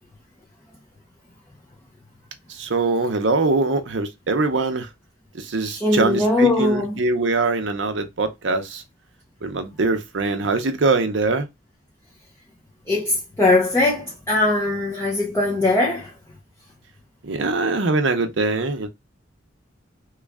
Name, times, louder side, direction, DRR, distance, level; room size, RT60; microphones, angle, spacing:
voice 1, 2.5-4.9 5.3-8.8 9.4-11.5 17.2-18.9, right 3 dB, 65° right, 0.7 m, -22 dB
voice 2, 5.6-7.0 12.9-16.1, left 2 dB, 15° left, 0.7 m, -20 dB
3.1 x 2.3 x 3.4 m
head